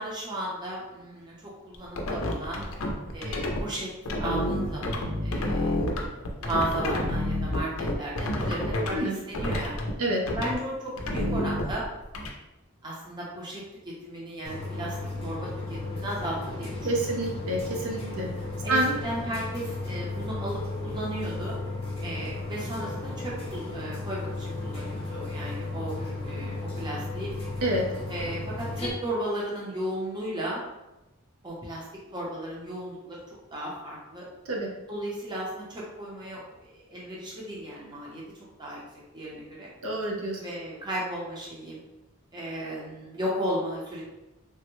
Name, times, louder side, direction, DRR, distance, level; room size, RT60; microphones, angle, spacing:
voice 1, 0.0-2.6 3.1-9.7 10.4-11.9 12.8-13.6 14.0-15.0 15.2-17.2 18.6-18.8 19.0-21.5 22.0-27.3 28.1-30.6 31.4-31.8 32.1-33.2 33.5-34.2 34.9-38.2 38.6-38.8 39.1-39.7 40.3-41.8 42.3-44.0, right 1 dB, 20° right, -5 dB, 0.6 m, -35 dB
sound 1, 1.7-3.6 4.0-9.0 9.3-9.9 10.3-10.5 11.0-12.3, left 1 dB, 65° left, 0.4 m, -29 dB
sound 2, 14.4-28.9, left 2 dB, 25° left, 0.7 m, -34 dB
voice 2, 16.8-18.3 18.7-18.9 27.6-27.9 34.5-34.7 39.8-40.4, right 1 dB, 75° right, -1 dB, 0.6 m, -27 dB
3.3 x 2.1 x 3.0 m, 0.99 s
head